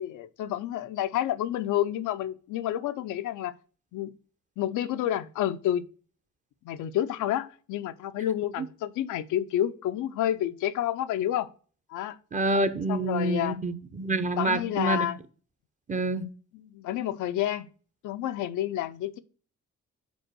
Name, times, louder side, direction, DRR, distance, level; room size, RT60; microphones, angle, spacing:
voice 1, 0.0-3.5 3.9-4.1 4.6-5.8 6.6-11.5 11.9-12.2 12.9-13.6 14.4-15.2 16.5-17.7 18.0-19.2, left 12 dB, 80° left, 0.5 m, -29 dB
voice 2, 12.3-15.1 15.9-16.2, right 2 dB, 25° right, 0.7 m, -27 dB
5.2 x 4.4 x 6.1 m
cardioid pair, 90°, 30 cm